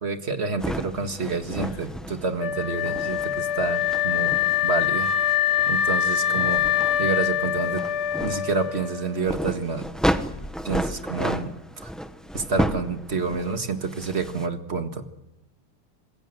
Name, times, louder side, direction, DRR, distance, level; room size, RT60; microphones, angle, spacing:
voice 1, 0.0-5.1 5.7-6.7 7.0-7.9 8.2-9.9 10.6-11.5 11.8-11.9 12.3-15.0, right 4 dB, 30° right, 7 dB, 1.9 m, -28 dB
sound 1, 0.6-14.5, equal, ahead, 0.6 m, -32 dB
Wind instrument woodwind instrument, 2.4-9.4, left 10 dB, 85° left, 2.7 m, -24 dB
26.5 x 21.5 x 7.8 m, 0.93 s
omnidirectional pair, 2.3 m